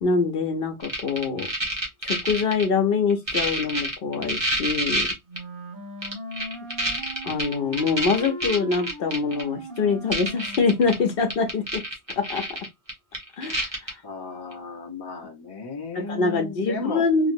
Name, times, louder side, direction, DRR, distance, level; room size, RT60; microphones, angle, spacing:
voice 1, 0.0-1.5 2.0-5.1 7.2-11.8 12.2-12.5 13.4-14.0 15.9-17.3, left 4 dB, 60° left, 0.9 m, -24 dB
sound 1, 0.8-2.6 3.1-5.4 6.0-9.4 9.8-9.9 10.1-10.9 11.2-13.9 14.5-14.6, right 1 dB, 25° right, 1.0 m, -27 dB
Wind instrument woodwind instrument, 5.3-11.5, equal, 55° right, 1.2 m, -39 dB
voice 2, 14.0-17.0, left 4 dB, 25° left, 0.7 m, -34 dB
2.9 x 2.9 x 2.6 m
omnidirectional pair, 1.1 m